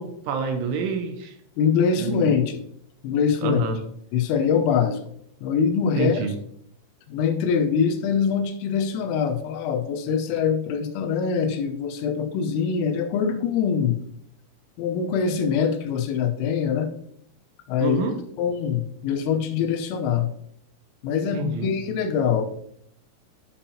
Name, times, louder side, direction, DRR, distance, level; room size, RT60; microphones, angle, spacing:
voice 1, 0.0-1.3 2.0-2.3 3.4-3.8 6.0-6.4 17.8-18.2 21.3-21.7, right 6 dB, 80° right, 6 dB, 3.1 m, -27 dB
voice 2, 1.6-2.6 3.0-3.6 4.1-5.0 5.4-6.2 7.1-14.0 14.8-16.9 17.7-18.0 18.4-20.3 21.0-22.5, left 6 dB, 90° left, 6 dB, 3.5 m, -23 dB
11.0 x 7.2 x 2.8 m, 0.69 s
omnidirectional pair, 5.8 m